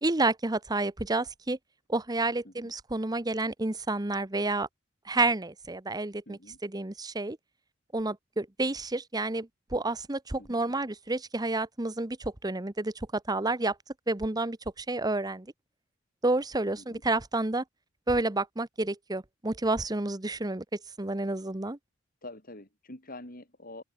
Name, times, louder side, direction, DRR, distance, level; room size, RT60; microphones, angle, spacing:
voice 1, 0.0-1.6 1.9-4.7 5.1-7.4 7.9-13.7 14.1-15.5 16.2-17.6 18.1-20.6 21.0-21.8, right 2 dB, 20° right, 1.0 m, -30 dB
voice 2, 6.3-6.6 10.4-10.6 16.7-17.0 22.2-23.8, left 2 dB, 45° left, 6.2 m, -46 dB
open air
head